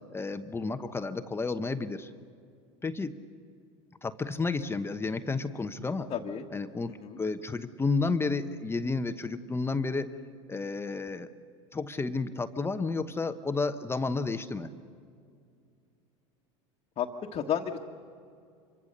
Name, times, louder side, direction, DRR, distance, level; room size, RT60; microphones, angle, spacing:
voice 1, 0.1-2.1 2.8-3.2 4.0-6.1 6.5-10.1 10.5-11.3 11.7-14.7, left 3 dB, 15° left, 9 dB, 1.0 m, -31 dB
voice 2, 6.1-6.5 6.9-7.2 17.0-17.8, left 8 dB, 35° left, 0 dB, 1.5 m, -32 dB
26.0 x 24.0 x 6.8 m, 2.3 s
hypercardioid pair, 95°, 16 cm